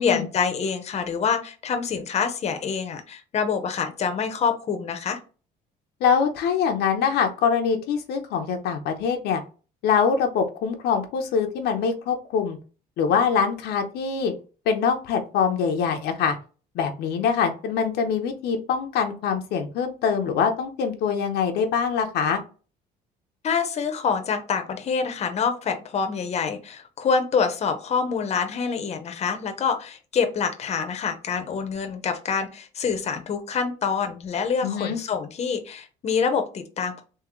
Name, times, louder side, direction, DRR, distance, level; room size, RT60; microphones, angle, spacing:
voice 1, 0.0-5.2 23.4-37.0, left 6 dB, 40° left, 6 dB, 0.7 m, -26 dB
voice 2, 6.0-9.4 9.8-12.6 13.0-14.3 14.7-16.4 16.7-22.4 34.6-35.0, left 6 dB, 75° left, 4 dB, 0.7 m, -24 dB
3.7 x 2.8 x 3.0 m, 0.35 s
cardioid pair, 110°, 17 cm